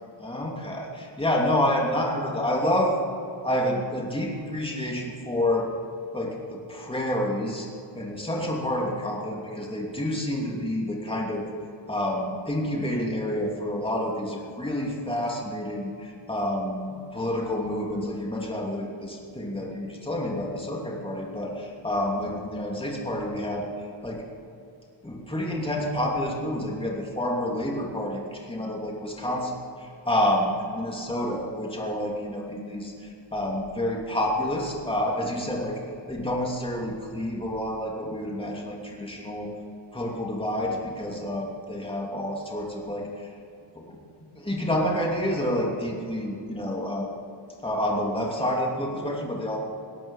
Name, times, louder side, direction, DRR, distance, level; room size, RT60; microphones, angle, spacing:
voice 1, 0.2-2.9 3.4-5.7 6.1-7.7 7.9-11.4 11.9-23.6 24.0-24.2 25.0-35.8 36.1-39.5 39.9-43.3 43.8-44.0 44.3-47.1 47.6-49.6, left 1 dB, 10° left, -2 dB, 2.8 m, -28 dB
18.5 x 10.5 x 5.7 m, 2.6 s
cardioid pair, 85°, 43 cm